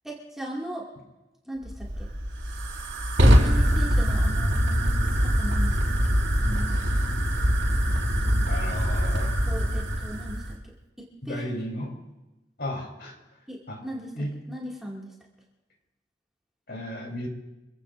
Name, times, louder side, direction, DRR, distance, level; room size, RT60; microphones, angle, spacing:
voice 1, 0.0-0.9 1.5-2.1 3.2-5.9 6.4-6.8 8.2-8.5 9.5-10.6 11.0-11.6 13.5-14.1 14.5-15.1, right 1 dB, ahead, -5 dB, 2.5 m, -38 dB
Fire, 1.6-10.6, equal, 85° right, 3.6 m, -23 dB
voice 2, 8.5-9.4 11.3-11.9 12.6-13.4 13.7-13.8 14.1-14.3 16.7-17.3, left 1 dB, 60° left, 1 dB, 4.1 m, -34 dB
26.0 x 17.0 x 2.7 m, 1.0 s
head